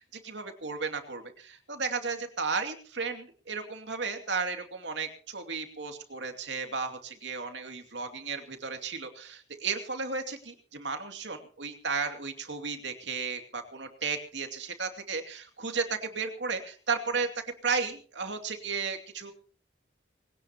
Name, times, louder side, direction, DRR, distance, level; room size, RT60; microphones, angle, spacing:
voice 1, 0.1-19.3, right 4 dB, 75° right, 6 dB, 2.6 m, -34 dB
21.0 x 18.0 x 2.9 m, 0.40 s
head